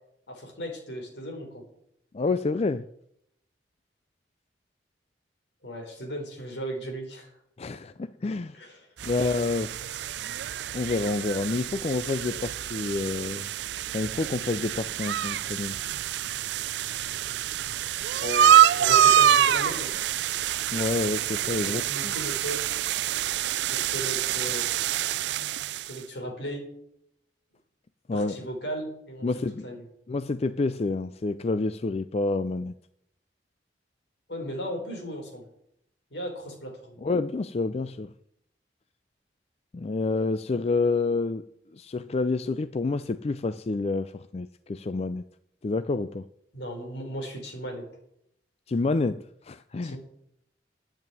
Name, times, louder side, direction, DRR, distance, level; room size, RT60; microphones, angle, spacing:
voice 1, 0.3-1.6 5.6-7.3 8.5-8.9 18.2-19.9 21.4-22.6 23.7-24.7 25.9-26.6 28.1-29.8 34.3-35.4 36.1-37.0 44.9-45.1 46.5-47.9 49.8-50.0, equal, 80° left, 4.0 m, -36 dB
voice 2, 2.1-2.9 7.6-8.6 9.0-10.1 10.7-13.5 13.9-15.8 20.7-22.1 28.1-28.4 29.2-29.7 30.1-32.7 37.0-38.1 39.7-41.4 41.7-45.2 45.6-46.2 48.7-50.0, left 3 dB, 35° left, 0.4 m, -28 dB
sound 1, 9.0-26.0, right 10 dB, 75° right, 0.4 m, -26 dB
8.9 x 8.5 x 9.2 m
head